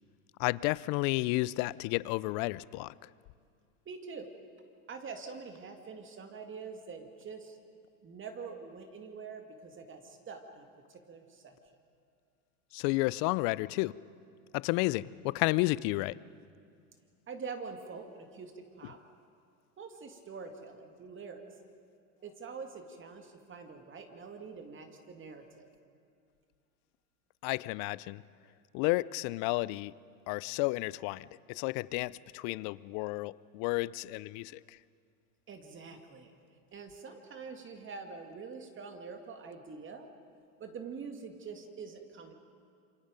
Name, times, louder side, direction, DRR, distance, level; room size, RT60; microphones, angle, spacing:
voice 1, 0.4-2.9 12.7-14.0 14.5-16.2 27.4-28.2 28.7-29.9 30.3-34.6, left 21 dB, 45° left, 21 dB, 0.5 m, -31 dB
voice 2, 3.9-4.3 4.9-7.6 8.0-11.6 17.3-19.0 19.8-21.4 22.2-25.7 35.5-36.3 36.7-40.1 40.6-42.3, right 5 dB, 25° right, 5 dB, 2.2 m, -45 dB
27.5 x 24.5 x 5.2 m, 2.3 s
hypercardioid pair, 100°, 43 cm